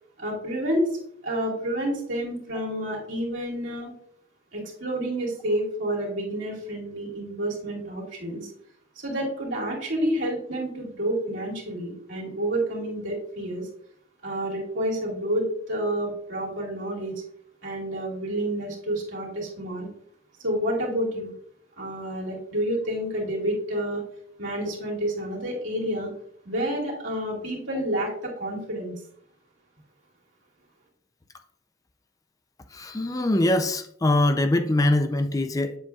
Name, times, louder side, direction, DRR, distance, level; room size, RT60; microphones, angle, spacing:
voice 1, 0.2-3.9 4.5-8.5 9.0-13.7 14.2-17.2 17.6-19.9 20.4-21.3 21.8-24.0 24.4-26.1 26.4-28.9, right 1 dB, 80° right, 2.5 m, -29 dB
voice 2, 32.7-35.8, left 1 dB, 20° left, 0.4 m, -23 dB
8.2 x 7.4 x 2.3 m
head